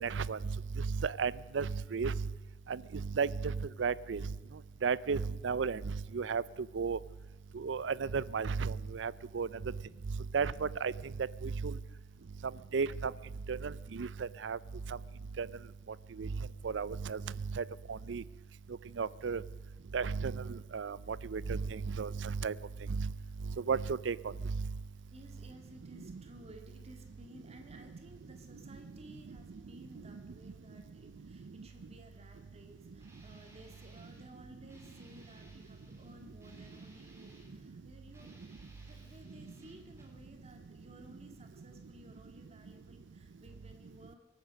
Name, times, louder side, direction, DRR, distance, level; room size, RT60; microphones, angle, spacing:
voice 1, 0.0-2.2 2.7-4.3 4.8-6.4 6.7-7.0 7.5-9.5 10.3-10.9 11.4-11.8 12.7-13.1 13.5-14.6 14.9-15.0 15.4-15.5 16.2-16.3 16.6-17.2 17.5-18.2 19.0-19.4 19.9-22.5 22.9-23.1 23.7-24.2 24.4-24.7, right 5 dB, 85° right, 20 dB, 0.5 m, -34 dB
voice 2, 25.1-38.4 38.8-44.2, right 1 dB, 35° right, 4 dB, 2.1 m, -56 dB
Guitar, 33.0-34.3 34.7-37.6 38.1-40.2, right 1 dB, 15° right, 3.2 m, -59 dB
23.5 x 9.0 x 6.4 m, 1.1 s
head